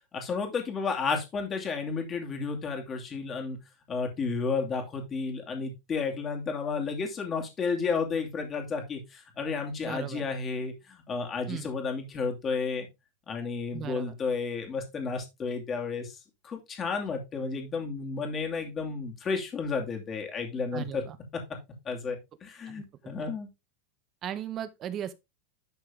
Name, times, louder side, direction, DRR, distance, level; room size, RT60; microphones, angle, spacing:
voice 1, 0.1-3.6 3.9-12.9 13.3-16.2 16.4-21.0 21.8-23.5, left 5 dB, 25° left, 2.6 m, -32 dB
voice 2, 9.8-10.3 11.5-11.7 13.7-14.1 20.7-21.2 22.7-22.8 24.2-25.1, right 10 dB, 30° right, 1.2 m, -37 dB
11.5 x 4.5 x 3.7 m
supercardioid pair, 150°, 0 cm